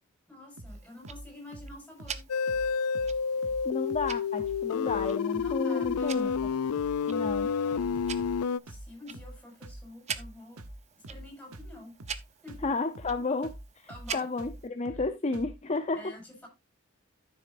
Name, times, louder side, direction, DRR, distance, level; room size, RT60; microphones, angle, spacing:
voice 1, 0.3-2.2 5.4-6.2 7.4-8.0 8.7-10.6 11.1-11.9 12.4-12.7 13.9-14.3 14.9-15.0 15.9-16.5, left 1 dB, 5° left, 5.4 m, -48 dB
sound 1, 0.6-0.8 1.0-1.3 1.5-1.7 2.0-2.2 2.5-2.7 2.9-3.2 3.4-3.6 3.9-4.1 4.4-4.6 4.9-5.1 5.3-5.5 5.8-6.0 6.3-6.5 6.8-7.0 7.2-7.4 7.7-8.4 8.7-8.9 9.1-9.4 9.6-9.8 10.1-10.3 10.6-10.8 11.0-11.3 11.5-11.7 12.0-12.2 12.5-12.7 12.9-13.2 13.4-13.6 13.9-14.1 14.4-14.6 14.8-15.1 15.3-15.5, right 1 dB, 80° right, 1.0 m, -44 dB
Tick-tock, 0.7-14.7, right 8 dB, 30° right, 0.7 m, -46 dB
sound 2, 2.3-8.6, left 6 dB, 90° left, 0.4 m, -29 dB
voice 2, 3.6-6.3 7.1-7.5 12.6-16.1, left 3 dB, 30° left, 0.7 m, -32 dB
13.0 x 7.1 x 2.6 m
head